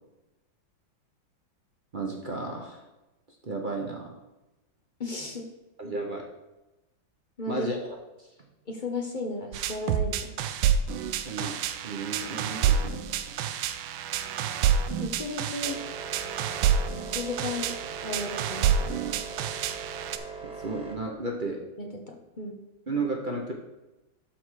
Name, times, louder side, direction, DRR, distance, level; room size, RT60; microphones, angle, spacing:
voice 1, 1.9-2.8 3.4-4.1 5.8-6.2 7.5-7.9 8.2-8.3 11.2-13.4 20.6-21.6 22.9-23.5, right 2 dB, 40° right, 0 dB, 0.7 m, -33 dB
voice 2, 5.0-5.5 7.4-7.7 8.7-10.4 15.0-15.8 17.1-17.8 18.0-19.2 21.8-22.6, left 2 dB, 40° left, 2 dB, 0.7 m, -35 dB
sound 1, 9.5-20.2, right 8 dB, 85° right, 1.4 m, -28 dB
sound 2, 15.6-20.9, right 4 dB, 5° right, 0.8 m, -40 dB
12.0 x 4.3 x 4.7 m, 1.0 s
omnidirectional pair, 2.2 m